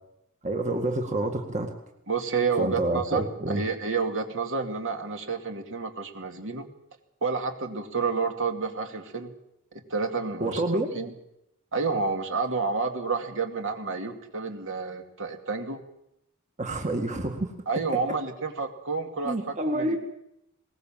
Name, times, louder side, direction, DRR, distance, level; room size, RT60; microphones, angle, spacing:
voice 1, 0.4-1.7 2.6-3.6 10.4-10.9 16.6-18.0 19.2-20.0, right 1 dB, 35° right, 4 dB, 1.9 m, -28 dB
voice 2, 2.1-6.7 7.2-9.3 9.7-11.1 11.7-15.8 17.7-20.0, right 4 dB, 60° right, 4 dB, 2.5 m, -30 dB
21.0 x 19.0 x 7.5 m, 0.82 s
head